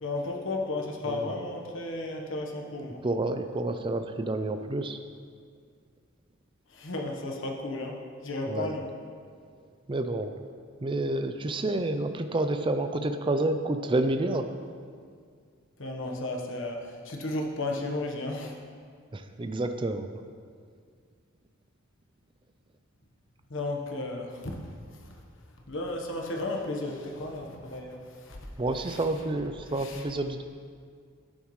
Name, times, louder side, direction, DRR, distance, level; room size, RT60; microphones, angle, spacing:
voice 1, 0.0-3.0 6.7-7.9 8.2-8.8 15.8-18.5 23.5-24.6 25.7-28.5 28.9-29.0 29.8-30.0, left 2 dB, 65° left, 1 dB, 1.2 m, -34 dB
voice 2, 1.0-1.4 3.0-5.0 8.5-8.7 9.9-10.3 10.8-14.5 19.1-20.1 28.6-30.4, right 2 dB, 25° right, 8 dB, 0.4 m, -29 dB
11.0 x 8.9 x 3.2 m, 2.1 s
head